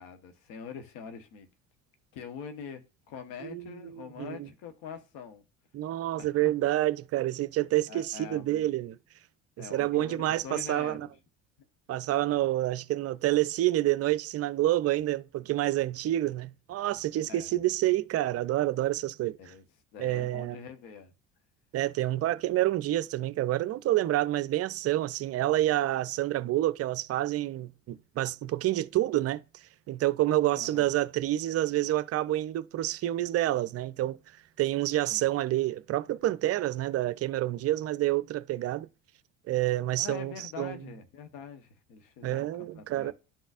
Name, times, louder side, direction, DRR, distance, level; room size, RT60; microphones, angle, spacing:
voice 1, 0.0-1.5 2.1-5.4 6.1-6.5 7.9-8.6 9.6-11.1 17.3-17.5 19.4-19.7 19.9-21.1 30.5-30.9 35.1-35.2 40.0-43.1, left 6 dB, 65° left, 1.2 m, -44 dB
voice 2, 3.4-4.5 5.7-9.0 9.6-11.1 11.9-19.4 20.0-20.6 21.7-29.4 29.9-34.2 34.6-38.9 39.5-40.8 42.2-43.1, right 15 dB, 40° right, 0.5 m, -28 dB
12.0 x 4.0 x 2.5 m
hypercardioid pair, 65°, 37 cm